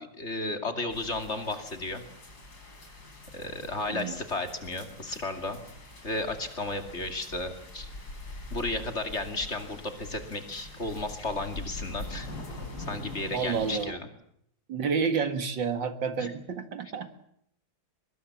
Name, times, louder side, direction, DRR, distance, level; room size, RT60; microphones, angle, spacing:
voice 1, 0.0-2.0 3.3-5.6 6.0-7.9 8.5-12.3 12.9-14.1 16.2-16.3, left 2 dB, 35° left, 6 dB, 2.7 m, -33 dB
sound 1, 0.9-13.8, left 2 dB, 55° left, 5.2 m, -43 dB
voice 2, 13.3-14.0 14.7-17.1, right 5 dB, 75° right, 9 dB, 2.5 m, -30 dB
24.0 x 21.5 x 7.2 m, 0.72 s
omnidirectional pair, 2.0 m